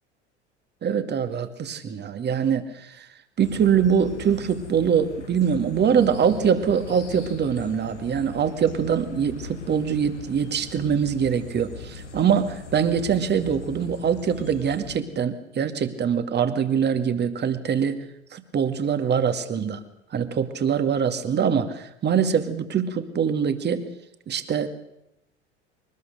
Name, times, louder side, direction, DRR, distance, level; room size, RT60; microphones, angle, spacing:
voice 1, 0.8-3.1 3.4-18.0 18.3-19.8 20.1-23.9 24.3-24.7, right 7 dB, 30° right, 9 dB, 2.2 m, -23 dB
sound 1, 3.4-15.0, left 4 dB, 85° left, 2.4 m, -40 dB
24.0 x 19.5 x 6.7 m, 0.84 s
figure-of-eight pair, 75°, 35 cm